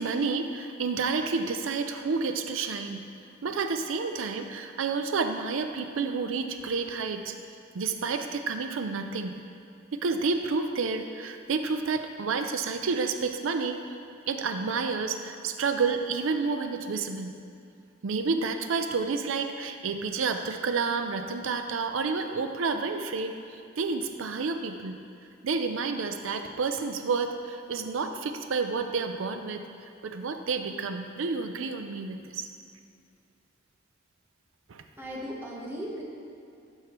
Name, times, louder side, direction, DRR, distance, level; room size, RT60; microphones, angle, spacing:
voice 1, 0.0-3.1 3.4-7.4 7.7-9.4 9.9-13.9 14.3-17.4 18.0-25.0 25.4-29.7 30.0-32.5 34.7-34.8, right 4 dB, 90° right, 7 dB, 0.5 m, -30 dB
voice 2, 35.0-36.0, equal, 10° right, -4 dB, 1.1 m, -37 dB
12.0 x 4.7 x 3.0 m, 2.5 s
head